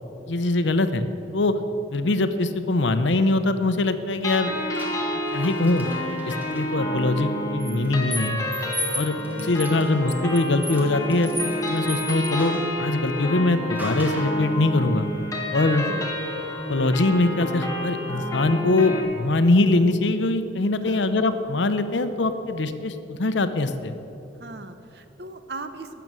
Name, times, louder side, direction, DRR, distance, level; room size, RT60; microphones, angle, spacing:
voice 1, 0.3-1.1 1.3-1.5 1.9-4.5 5.3-5.9 6.2-8.4 8.9-11.3 11.7-15.1 15.5-15.9 16.7-23.9, left 2 dB, 75° left, 10 dB, 0.8 m, -22 dB
sound 1, 4.2-19.0, left 1 dB, 15° left, 1.8 m, -29 dB
sound 2, 4.8-6.6 7.6-12.8 13.8-14.4, equal, 10° right, 1.5 m, -35 dB
voice 2, 9.2-10.0 15.8-16.2 20.8-21.3 24.4-26.0, right 2 dB, 60° right, 9 dB, 0.8 m, -39 dB
12.5 x 6.9 x 8.9 m, 2.8 s
head